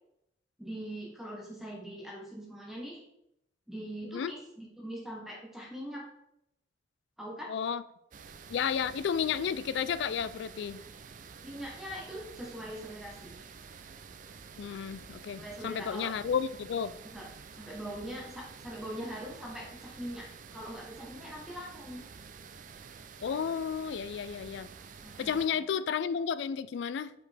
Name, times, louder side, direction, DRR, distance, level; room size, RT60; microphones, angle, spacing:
voice 1, 0.6-3.0 3.7-6.1 7.2-7.5 11.4-13.5 15.3-16.1 17.0-17.3 17.6-22.0 25.0-25.6, equal, ahead, -3 dB, 1.0 m, -42 dB
voice 2, 7.5-7.8 8.5-10.8 14.6-16.9 23.2-24.7 25.2-27.1, left 7 dB, 65° left, 15 dB, 0.3 m, -32 dB
sound 1, 8.1-25.5, right 5 dB, 45° right, 0.4 m, -49 dB
5.7 x 5.1 x 3.4 m, 0.81 s
head